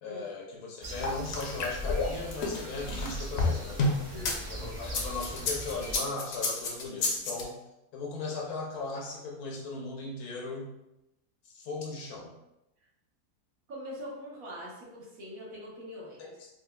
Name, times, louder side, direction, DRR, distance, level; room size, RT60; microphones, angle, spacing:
voice 1, 0.0-3.8 4.5-7.6 7.9-10.7 11.4-12.3 16.2-16.5, left 3 dB, 90° left, -1 dB, 1.2 m, -37 dB
sound 1, 0.8-6.0, right 1 dB, 45° right, 0.6 m, -40 dB
sound 2, 1.0-4.4 4.8-7.4, left 3 dB, 60° left, 0.7 m, -30 dB
voice 2, 4.1-4.5 13.7-16.3, equal, 70° right, -5 dB, 1.5 m, -43 dB
4.7 x 2.4 x 2.2 m, 0.91 s
omnidirectional pair, 1.6 m